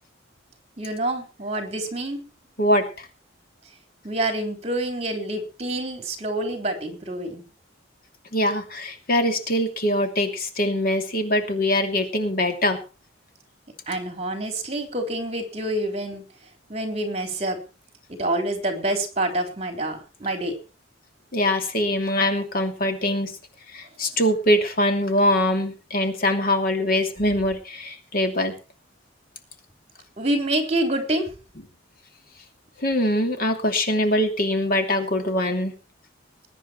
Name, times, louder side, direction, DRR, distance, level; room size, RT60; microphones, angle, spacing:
voice 1, 0.8-2.2 4.0-7.4 13.9-16.2 16.7-17.6 18.1-20.5 30.2-31.3, right 1 dB, 35° right, 5 dB, 3.7 m, -27 dB
voice 2, 2.6-3.1 8.3-12.8 21.3-23.3 23.7-28.5 32.8-35.7, left 1 dB, 45° left, 5 dB, 2.8 m, -23 dB
21.0 x 9.9 x 4.5 m, 0.33 s
head